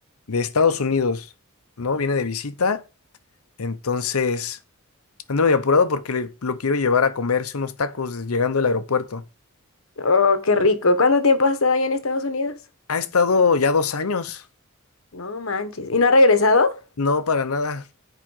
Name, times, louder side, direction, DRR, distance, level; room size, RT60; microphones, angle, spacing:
voice 1, 0.3-1.3 1.8-2.8 3.6-4.6 5.3-9.2 12.9-14.4 17.0-17.8, left 4 dB, 80° left, 0.8 m, -22 dB
voice 2, 10.0-12.6 15.1-16.8, left 3 dB, 65° left, 1.3 m, -19 dB
7.6 x 4.9 x 6.4 m
head